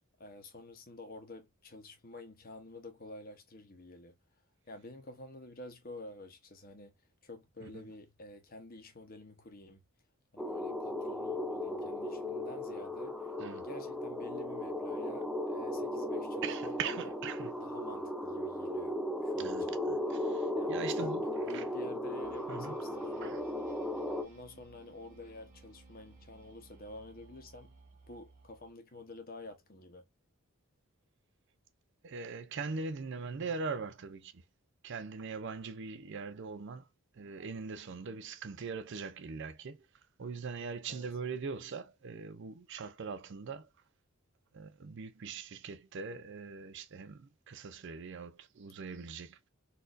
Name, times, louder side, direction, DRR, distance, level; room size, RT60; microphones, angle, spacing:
voice 1, 0.2-4.2 4.7-6.9 7.2-9.8 10.3-17.1 17.6-19.8 20.6-23.4 24.2-27.8 28.1-30.0 40.9-41.1, left 2 dB, 45° left, 0.9 m, -49 dB
sound 1, 10.4-24.2, left 1 dB, ahead, 0.5 m, -36 dB
voice 2, 16.4-17.5 19.4-21.7 22.5-22.8 23.2-23.4 32.0-34.4 34.8-36.9 37.1-39.8 40.2-43.7 44.5-49.5, right 5 dB, 55° right, 0.5 m, -41 dB
sound 2, 22.2-28.8, right 3 dB, 35° right, 1.9 m, -59 dB
4.1 x 2.6 x 2.5 m
head